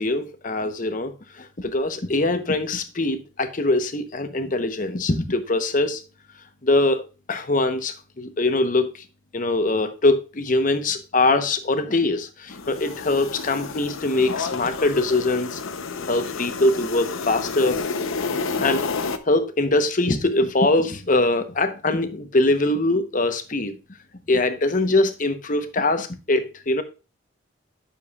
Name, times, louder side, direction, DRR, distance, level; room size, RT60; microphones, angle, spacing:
voice 1, 0.0-6.0 6.6-9.0 9.3-15.6 16.1-17.8 18.6-23.8 24.3-26.8, left 2 dB, 40° left, 0.9 m, -22 dB
sound 1, 12.5-19.2, left 4 dB, 85° left, 0.8 m, -30 dB
9.7 x 7.0 x 2.4 m
head